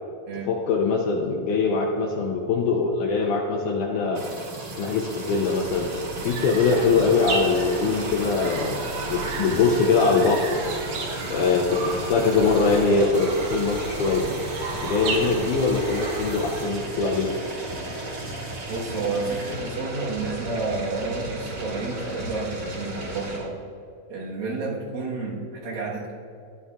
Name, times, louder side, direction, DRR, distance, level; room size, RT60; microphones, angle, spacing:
voice 1, 0.5-4.2 4.8-5.9 6.2-10.5 11.3-14.3 14.8-17.3, left 4 dB, 80° left, 0 dB, 1.9 m, -22 dB
sound 1, 4.1-23.4, right 1 dB, 50° right, 2.5 m, -35 dB
sound 2, 5.4-16.9, right 3 dB, 65° right, 1.9 m, -34 dB
voice 2, 18.7-23.6 24.1-26.1, right 3 dB, 85° right, -4 dB, 3.2 m, -30 dB
12.0 x 9.9 x 2.4 m, 2.4 s
omnidirectional pair, 4.1 m